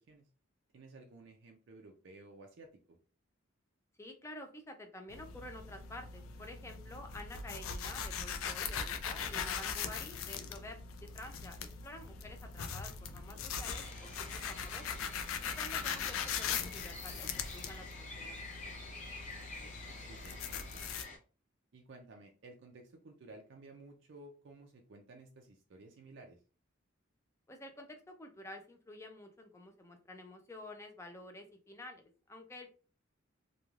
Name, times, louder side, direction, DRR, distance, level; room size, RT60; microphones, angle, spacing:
voice 1, 0.7-3.0 15.7-15.9 19.6-21.0 21.7-26.4, right 2 dB, 60° right, 3 dB, 0.4 m, -55 dB
voice 2, 4.0-15.0 15.4-18.3 27.5-32.7, left 1 dB, 15° left, 4 dB, 0.4 m, -50 dB
sound 1, 5.1-21.0, left 6 dB, 85° left, 0.4 m, -41 dB
sound 2, 13.6-21.2, left 3 dB, 35° left, 0.7 m, -49 dB
3.0 x 2.2 x 2.4 m, 0.36 s
head